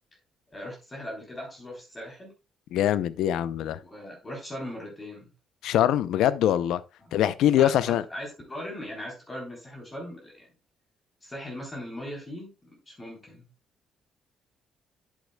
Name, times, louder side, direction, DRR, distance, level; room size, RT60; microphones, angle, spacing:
voice 1, 0.5-2.3 3.8-5.3 7.0-7.1 7.6-10.5 11.2-12.5 12.9-13.5, left 1 dB, 20° left, 3.7 m, -39 dB
voice 2, 2.7-3.8 5.6-6.8 7.1-8.0, left 11 dB, 85° left, 0.6 m, -23 dB
10.5 x 8.3 x 2.3 m
cardioid pair, 115°, 0 cm